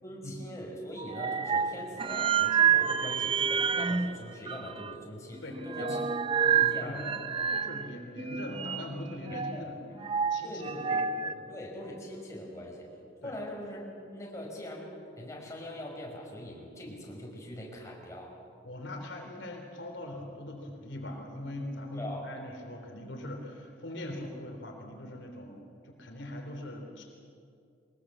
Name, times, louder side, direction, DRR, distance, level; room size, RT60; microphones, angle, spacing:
voice 1, 0.0-6.0 6.5-7.2 9.5-9.7 10.4-12.9 13.2-13.8 14.1-18.3 21.9-22.3, left 1 dB, 15° left, -2 dB, 5.6 m, -42 dB
sound 1, 1.0-4.2 4.5-4.9 5.4-7.9 8.2-9.6 10.0-11.3, right 7 dB, 30° right, 0.7 m, -28 dB
voice 2, 5.4-6.0 6.4-7.1 7.5-10.0 10.3-10.8 11.3-11.5 13.2-13.4 18.6-27.0, left 1 dB, 80° left, 2 dB, 3.4 m, -41 dB
23.0 x 21.0 x 7.5 m, 2.4 s
head